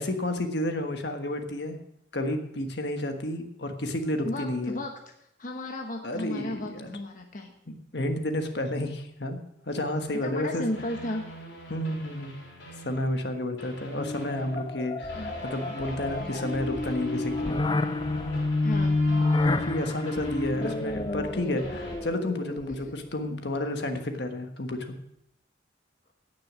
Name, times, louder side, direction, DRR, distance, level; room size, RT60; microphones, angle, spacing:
voice 1, 0.0-1.8 2.1-4.8 6.0-6.9 7.7-10.6 11.7-12.3 12.8-17.6 19.4-24.9, left 1 dB, 60° left, 6 dB, 1.4 m, -31 dB
voice 2, 4.2-4.9 5.4-7.5 10.2-11.3 15.1-15.3 18.6-19.0 22.7-22.9, left 1 dB, 45° left, 2 dB, 1.1 m, -34 dB
sound 1, 10.7-13.2 13.6-22.0, equal, 75° left, 3.8 m, -42 dB
sound 2, 14.0-23.1, left 2 dB, 25° left, 0.4 m, -29 dB
17.0 x 6.5 x 6.3 m, 0.78 s
head